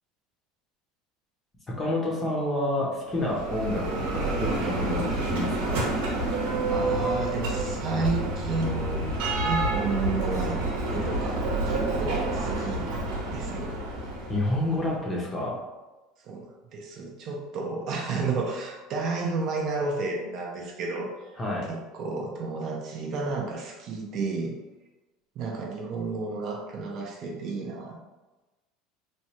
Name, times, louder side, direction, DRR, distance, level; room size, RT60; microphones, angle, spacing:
voice 1, 1.7-5.9 14.3-15.6 21.4-21.7, left 1 dB, 15° left, -3 dB, 0.6 m, -29 dB
Bell, 3.1-14.9, right 2 dB, 75° right, 0.8 m, -28 dB
voice 2, 6.7-10.6 10.9-12.9 13.3-13.7 16.2-21.3 21.7-24.6 25.4-28.0, right 3 dB, 40° right, -1 dB, 0.5 m, -32 dB
3.0 x 2.2 x 2.8 m, 1.1 s
cardioid pair, 170°, 0 cm